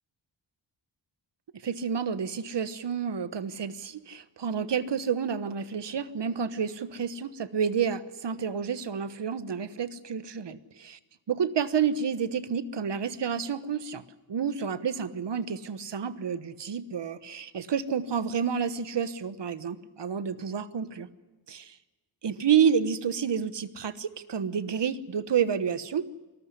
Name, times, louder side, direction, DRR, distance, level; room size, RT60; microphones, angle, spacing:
voice 1, 1.6-11.0 11.3-14.0 14.3-21.1 21.5-21.8 22.2-26.1, right 7 dB, 65° right, 13 dB, 1.2 m, -29 dB
24.5 x 14.0 x 9.9 m, 1.2 s
cardioid pair, 65°, 46 cm